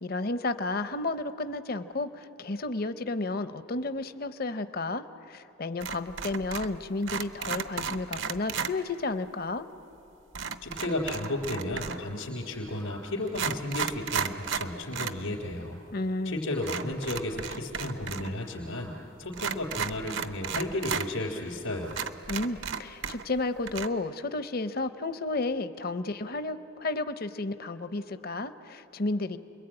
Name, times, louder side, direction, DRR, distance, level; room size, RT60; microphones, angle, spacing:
voice 1, 0.0-9.7 15.9-16.5 22.3-29.4, left 2 dB, 50° left, 11 dB, 0.7 m, -32 dB
sound 1, 5.8-6.8 7.0-8.7 10.3-12.1 12.8-12.9 13.3-15.2 15.5-15.6 16.6-18.3 18.5-18.6 19.3-21.1 21.5-21.6 21.9-23.4 23.7-23.9, right 6 dB, 70° right, 0.9 m, -34 dB
voice 2, 10.6-15.8 16.2-22.0, left 1 dB, 80° left, -5 dB, 3.6 m, -33 dB
29.5 x 22.5 x 8.9 m, 2.9 s
head